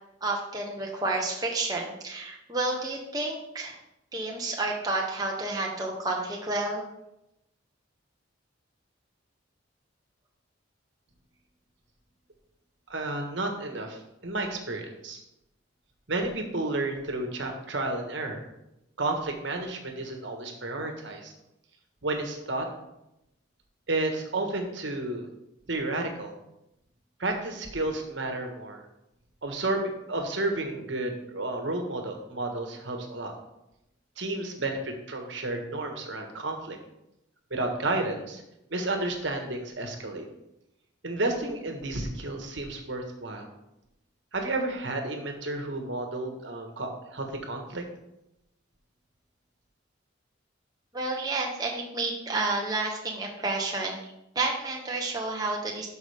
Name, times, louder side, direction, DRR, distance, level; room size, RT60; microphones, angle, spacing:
voice 1, 0.2-3.8 4.1-6.8 50.9-55.9, right 2 dB, 20° right, -1 dB, 0.9 m, -30 dB
voice 2, 12.9-15.2 16.1-18.4 19.0-21.3 22.0-22.6 23.9-25.3 25.7-26.3 27.2-28.8 29.4-33.3 34.2-36.8 37.5-38.4 38.7-40.3 41.0-43.5 44.3-47.8, right 2 dB, 65° right, 3 dB, 1.4 m, -31 dB
12.0 x 5.2 x 3.5 m, 0.87 s
head